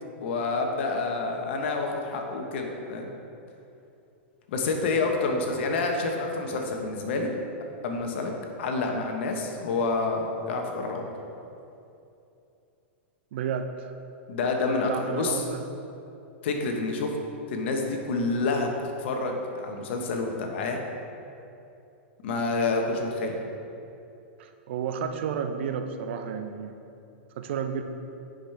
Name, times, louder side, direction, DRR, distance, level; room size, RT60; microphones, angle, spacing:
voice 1, 0.2-3.1 4.5-7.3 7.8-8.3 8.6-11.1 14.3-15.4 16.4-17.1 17.5-18.7 19.0-20.8 22.2-23.4, left 3 dB, 65° left, 2 dB, 1.1 m, -28 dB
voice 2, 13.3-13.9 14.9-15.6 24.4-26.7 27.4-27.8, right 7 dB, 65° right, 7 dB, 0.6 m, -31 dB
10.0 x 5.2 x 3.4 m, 2.8 s
hypercardioid pair, 115°, 7 cm